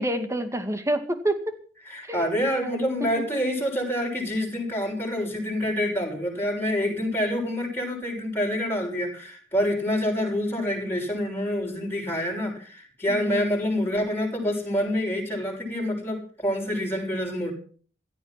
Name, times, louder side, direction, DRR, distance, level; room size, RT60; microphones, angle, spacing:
voice 1, 0.0-1.5 2.1-2.3 2.6-2.9 13.1-13.6, right 1 dB, 15° right, 8 dB, 2.2 m, -28 dB
voice 2, 1.9-17.5, equal, 15° left, -2 dB, 6.6 m, -27 dB
16.5 x 13.0 x 5.9 m, 0.43 s
head